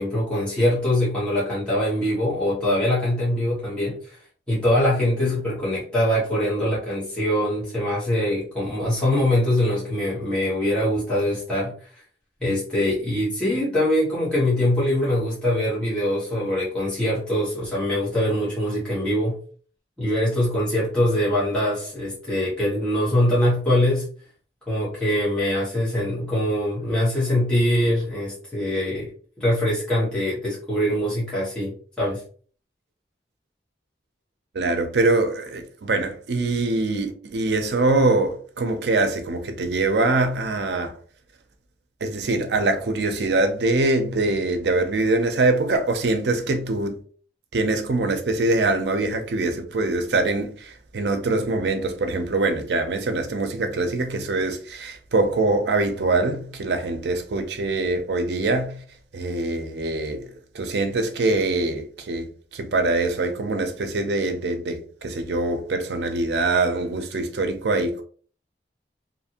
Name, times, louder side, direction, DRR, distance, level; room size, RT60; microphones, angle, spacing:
voice 1, 0.0-4.2 4.5-11.7 12.4-19.4 20.0-24.1 24.7-29.1 29.4-32.2, left 1 dB, 5° left, 1.1 m, -23 dB
voice 2, 34.5-41.0 42.0-47.0 47.5-58.8 59.1-68.0, right 2 dB, 70° right, 0.5 m, -23 dB
2.6 x 2.5 x 2.8 m
head